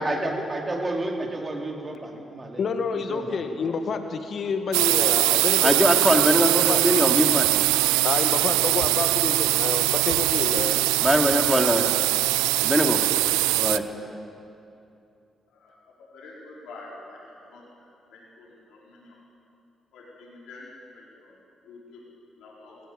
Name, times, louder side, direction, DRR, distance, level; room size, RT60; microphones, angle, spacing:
voice 1, 0.0-2.6 2.9-3.4, right 1 dB, 35° right, 0 dB, 4.0 m, -30 dB
voice 2, 2.6-6.8 8.0-10.8, left 5 dB, 60° left, 7 dB, 1.8 m, -29 dB
sound 1, 4.7-13.8, right 19 dB, 85° right, 0.4 m, -22 dB
voice 3, 5.6-7.7 11.0-11.9 12.6-13.0 13.6-13.9, equal, 5° left, 4 dB, 2.6 m, -22 dB
voice 4, 16.1-19.2 19.9-21.4 21.6-22.0 22.4-22.8, left 2 dB, 75° left, -5 dB, 4.6 m, -47 dB
19.5 x 16.5 x 9.0 m, 2.6 s
hypercardioid pair, 45°, 0 cm